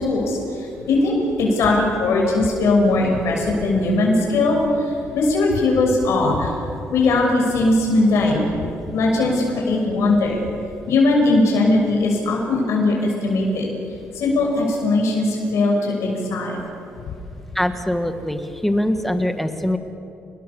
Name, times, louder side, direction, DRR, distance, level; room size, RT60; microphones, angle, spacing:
voice 1, 0.0-6.5 6.9-8.5 8.9-10.4 10.9-13.7 14.1-16.6, left 2 dB, 80° left, -1 dB, 6.4 m, -19 dB
voice 2, 17.6-19.8, left 1 dB, 5° left, 8 dB, 1.6 m, -22 dB
29.5 x 21.0 x 7.1 m, 2.7 s
cardioid pair, 125°, 5 cm